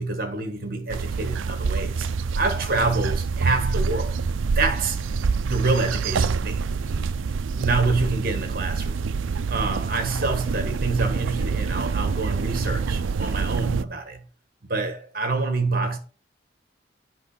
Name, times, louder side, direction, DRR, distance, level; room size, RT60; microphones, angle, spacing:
voice 1, 0.0-2.1 2.3-4.2 4.5-5.0 5.4-6.6 6.9-7.0 7.6-9.0 9.5-14.2 14.7-16.0, right 3 dB, 50° right, 1.6 m, -26 dB
sound 1, 0.9-13.8, right 5 dB, 85° right, 0.5 m, -26 dB
8.1 x 5.9 x 4.4 m
head